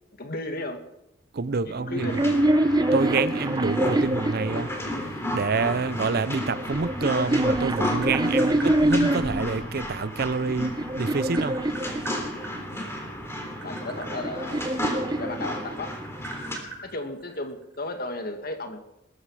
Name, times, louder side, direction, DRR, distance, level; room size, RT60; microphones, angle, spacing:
voice 1, 0.2-0.8 1.7-2.1 13.6-14.7 15.1-16.0 16.8-18.8, left 2 dB, 50° left, 2.0 m, -34 dB
voice 2, 1.3-2.2 2.9-4.8 5.3-11.6, right 4 dB, 55° right, 0.6 m, -27 dB
sound 1, 1.8-5.2 6.1-9.5 10.2-12.6 13.6-16.1, right 1 dB, 20° right, 0.8 m, -26 dB
sound 2, 2.0-16.6, left 1 dB, 15° left, 3.3 m, -33 dB
Tap, 7.6-9.1 10.4-12.5 13.3-15.5 15.8-17.8, right 2 dB, 75° right, 7.2 m, -40 dB
20.5 x 14.5 x 4.9 m
head